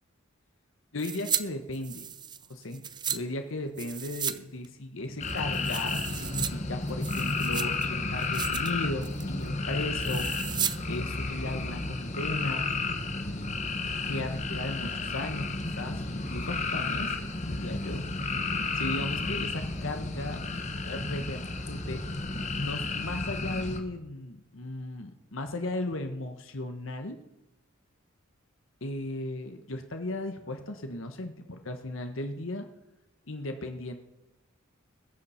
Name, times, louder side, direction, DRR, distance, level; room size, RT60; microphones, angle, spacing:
voice 1, 0.9-2.0 2.5-2.8 3.1-10.3 10.9-12.7 14.0-15.5 15.8-18.1 18.7-20.4 20.8-22.0 22.6-27.2 28.8-32.7 33.3-33.9, left 2 dB, 65° left, 6 dB, 1.2 m, -36 dB
sound 1, 1.0-1.4 1.7-3.2 3.8-4.4 4.6-4.7 5.2-6.5 6.9-7.9 8.2-8.7 9.0-9.3 10.0-10.8 11.1-11.2, right 8 dB, 20° right, 0.5 m, -34 dB
sound 2, 5.2-23.8, left 3 dB, 35° left, 1.4 m, -32 dB
20.5 x 7.1 x 5.8 m, 0.96 s
head